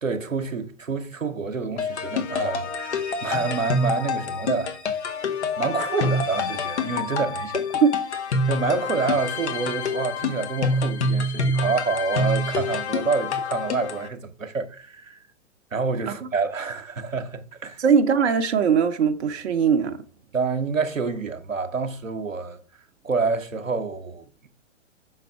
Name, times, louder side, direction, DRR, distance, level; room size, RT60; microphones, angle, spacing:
voice 1, 0.0-4.8 5.6-7.8 8.5-15.2 15.7-17.8 20.3-22.6 23.0-24.3, right 4 dB, 85° right, 0.9 m, -27 dB
sound 1, 1.8-14.1, left 2 dB, 60° left, 1.3 m, -27 dB
voice 2, 17.8-20.0, right 6 dB, 60° right, 0.7 m, -20 dB
6.3 x 4.1 x 5.5 m
figure-of-eight pair, 115°, 38 cm